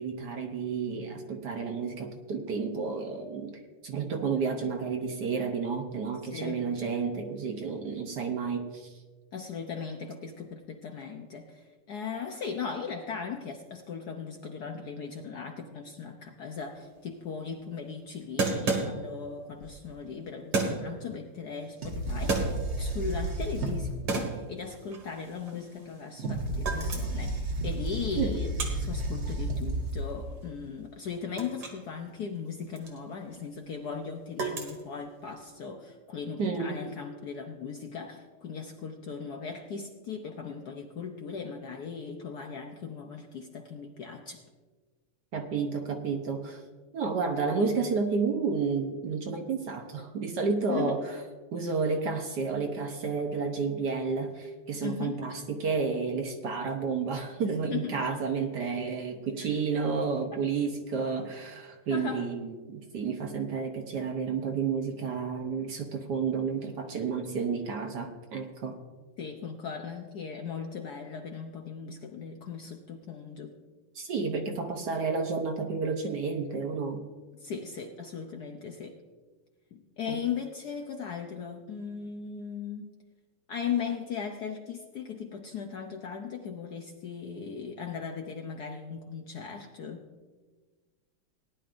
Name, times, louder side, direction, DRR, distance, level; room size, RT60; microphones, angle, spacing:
voice 1, 0.0-8.9 28.2-28.4 36.4-36.8 45.3-46.6 46.9-51.0 51.5-68.8 73.9-77.0 80.1-80.2, right 5 dB, 60° right, 4 dB, 1.3 m, -31 dB
voice 2, 6.2-6.7 9.3-44.4 50.7-51.0 54.8-55.2 57.7-58.0 59.4-59.5 60.3-60.4 61.9-62.3 69.2-73.5 77.4-79.0 79.7-82.9 83.5-90.1, left 6 dB, 65° left, 3 dB, 1.0 m, -38 dB
sound 1, 16.8-16.9 17.0-17.1 18.4-19.3 20.5-21.0 22.0-23.0 23.4-23.8 24.1-26.2 26.5-27.3 27.7-31.9 32.1-35.4, right 3 dB, 80° right, 2.6 m, -33 dB
sound 2, 19.6-19.7 21.8-24.0 26.1-30.3, right 1 dB, 40° right, 1.1 m, -32 dB
18.5 x 10.5 x 2.5 m, 1.4 s
omnidirectional pair, 2.4 m